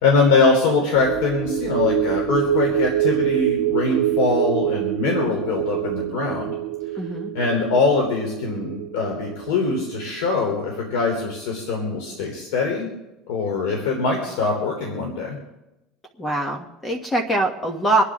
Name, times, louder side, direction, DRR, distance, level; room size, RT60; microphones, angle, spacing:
voice 1, 0.0-6.5 7.3-12.9 13.3-15.4, left 4 dB, 85° left, 1 dB, 3.4 m, -22 dB
sound 1, 1.0-11.6 11.9-12.1, right 13 dB, 80° right, 1.0 m, -26 dB
voice 2, 6.9-7.3 16.2-18.0, right 2 dB, 15° left, 4 dB, 1.4 m, -23 dB
26.5 x 9.9 x 3.7 m, 0.96 s
cardioid pair, 140°, 0 cm